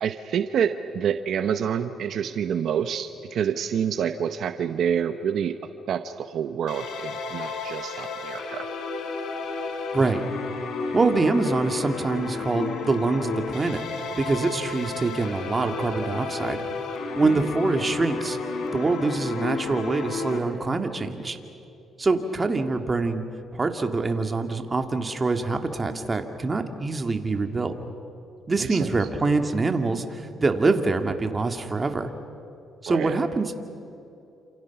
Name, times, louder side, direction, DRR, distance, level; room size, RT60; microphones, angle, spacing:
voice 1, 0.0-5.6 5.9-8.7 17.3-17.5 28.6-29.0 32.9-33.2, right 8 dB, 70° right, 9 dB, 0.9 m, -27 dB
sound 1, 6.7-20.4, left 4 dB, 75° left, 3.7 m, -32 dB
voice 2, 9.9-10.3 10.9-16.6 17.2-18.4 18.7-21.4 22.0-23.2 23.5-27.7 28.5-32.1 32.8-33.5, right 3 dB, 25° right, 6 dB, 2.1 m, -25 dB
28.5 x 27.5 x 6.0 m, 2.8 s
cardioid pair, 90°, 0 cm